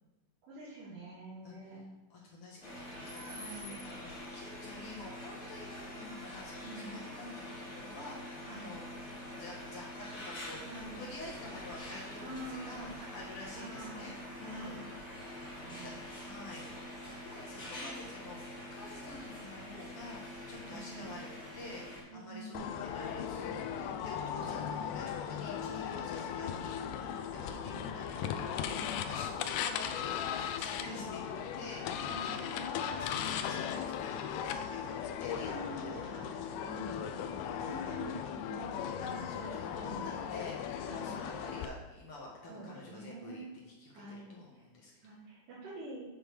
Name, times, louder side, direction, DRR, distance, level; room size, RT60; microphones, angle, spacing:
voice 1, 0.5-1.8 3.3-3.8 6.6-6.9 8.5-8.7 10.7-11.0 12.2-12.9 13.5-14.1 14.5-14.8 15.6-15.9 17.5-17.7 20.6-21.2 22.1-22.8 24.4-24.6 27.4-27.9 28.7-29.0 30.8-31.0 32.1-32.3 35.5-36.3 36.6-37.1 37.6-38.7 39.3-39.5 39.7-40.0 40.9-41.1 42.5-43.5 43.9-44.3 45.0-46.1, right 2 dB, 65° right, -13 dB, 4.6 m, -46 dB
voice 2, 1.4-1.8 2.1-8.8 9.4-14.9 16.2-16.7 17.2-21.3 21.5-35.6 35.8-36.2 36.6-38.0 38.5-44.9, left 2 dB, 55° left, -3 dB, 1.6 m, -49 dB
sound 1, 2.6-22.0, left 1 dB, 25° left, 2.9 m, -45 dB
sound 2, 11.3-17.7, right 1 dB, 85° right, 4.1 m, -54 dB
sound 3, 22.5-41.7, left 8 dB, 85° left, 1.8 m, -37 dB
7.7 x 7.2 x 3.4 m, 1.1 s
omnidirectional pair, 4.3 m